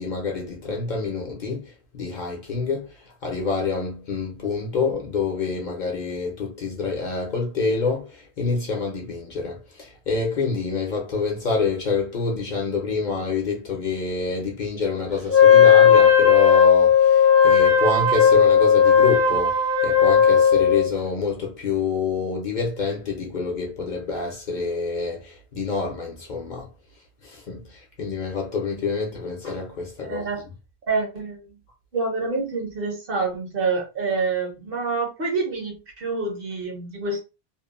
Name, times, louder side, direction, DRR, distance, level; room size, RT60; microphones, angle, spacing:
voice 1, 0.0-26.7 27.2-30.5, left 4 dB, 50° left, 0.7 m, -27 dB
Wind instrument woodwind instrument, 15.3-20.9, left 7 dB, 30° right, 0.6 m, -15 dB
voice 2, 30.0-30.4 30.9-31.4 31.9-37.2, right 4 dB, 60° right, 1.1 m, -27 dB
2.8 x 2.1 x 2.4 m
omnidirectional pair, 1.1 m